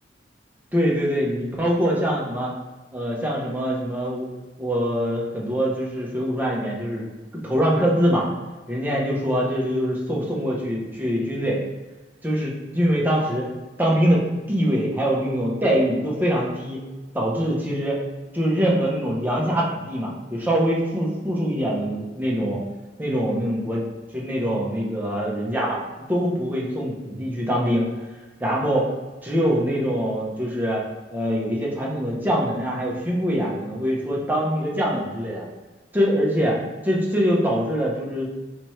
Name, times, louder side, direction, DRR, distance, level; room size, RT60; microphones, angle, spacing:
voice 1, 0.7-2.5 2.9-4.3 4.6-7.1 7.4-8.3 8.7-11.6 12.2-13.5 13.8-16.8 17.1-18.0 18.3-22.6 23.0-23.8 24.1-25.8 26.1-27.9 28.4-28.9 29.2-30.8 31.1-35.4 35.9-36.6 36.8-38.3, equal, 10° right, -4 dB, 0.8 m, -23 dB
4.3 x 3.4 x 3.1 m, 1.2 s
head